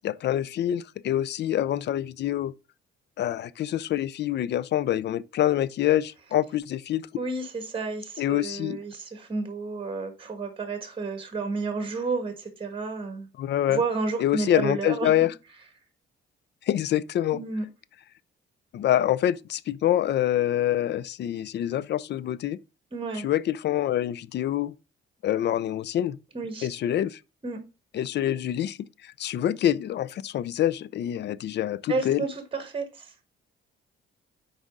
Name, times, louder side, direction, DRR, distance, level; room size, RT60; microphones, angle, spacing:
voice 1, 0.0-2.5 3.2-7.0 8.2-8.8 13.4-13.8 14.2-15.3 16.7-17.4 18.7-22.6 23.2-24.7 25.2-26.2 26.6-27.2 27.9-32.2, left 12 dB, 60° left, 0.4 m, -26 dB
voice 2, 7.2-13.3 13.7-15.1 17.3-17.6 22.9-23.3 26.3-26.7 27.4-27.6 31.9-33.1, right 4 dB, 25° right, 1.5 m, -31 dB
6.4 x 4.9 x 3.7 m
cardioid pair, 90°, 20 cm